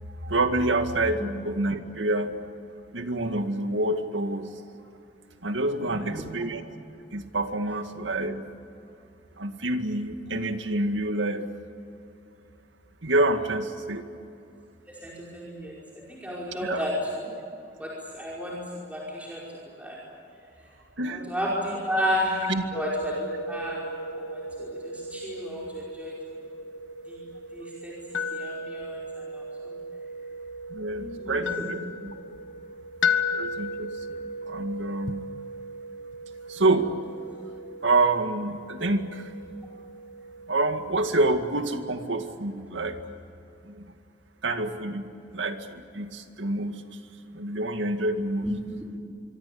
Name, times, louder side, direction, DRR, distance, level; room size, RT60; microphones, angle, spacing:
voice 1, 0.2-1.2 1.4-2.3 2.9-4.5 5.4-6.6 7.1-8.4 9.4-11.5 13.0-14.1 16.6-16.8 21.0-21.2 22.5-22.6 30.7-32.1 33.3-33.9 34.5-35.3 36.5-36.9 37.8-39.3 40.5-43.0 43.7-43.9 44.4-45.1 45.3-46.8 47.3-48.5, right 2 dB, 85° right, 7 dB, 2.1 m, -27 dB
voice 2, 5.8-6.1 15.0-15.8 16.1-17.3 17.8-18.6 18.9-19.4 19.8-20.0 21.1-23.9 24.2-26.2 27.1-27.2 27.5-29.8 31.0-31.4 48.4-48.5, equal, 10° right, -5 dB, 5.1 m, -32 dB
sound 1, 22.7-41.8, left 3 dB, 85° left, 1.6 m, -35 dB
25.5 x 24.0 x 8.6 m, 2.6 s
head